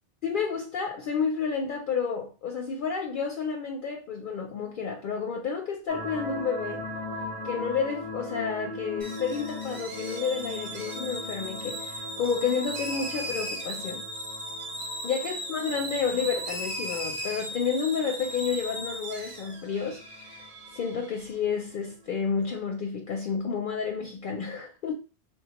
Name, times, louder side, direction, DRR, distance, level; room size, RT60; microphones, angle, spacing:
voice 1, 0.2-6.8 7.4-14.1 15.0-20.5 20.7-24.9, left 6 dB, 60° left, 0.6 m, -30 dB
sound 1, 5.9-22.5, left 2 dB, 10° right, 0.5 m, -40 dB
sound 2, 9.0-21.3, right 1 dB, 45° right, 0.8 m, -37 dB
3.6 x 2.2 x 2.9 m
omnidirectional pair, 1.1 m